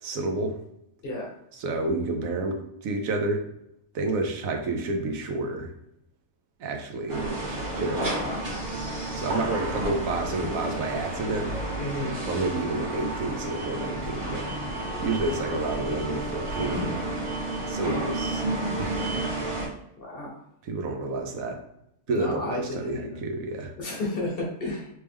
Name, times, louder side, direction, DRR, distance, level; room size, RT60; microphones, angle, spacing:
voice 1, 0.0-0.6 1.5-3.4 3.9-5.7 6.6-8.3 9.1-11.5 12.2-14.5 15.0-17.0 17.7-18.4 18.8-19.4 20.6-21.6 22.1-23.7, right 2 dB, 80° right, 3 dB, 1.1 m, -30 dB
sound 1, 7.1-19.7, right 2 dB, 60° right, 1.7 m, -31 dB
voice 2, 7.9-8.4 11.8-12.2 20.0-20.3 22.1-23.2 23.8-24.9, left 1 dB, 45° left, -2 dB, 1.1 m, -32 dB
3.3 x 3.0 x 3.4 m, 0.76 s
omnidirectional pair, 1.4 m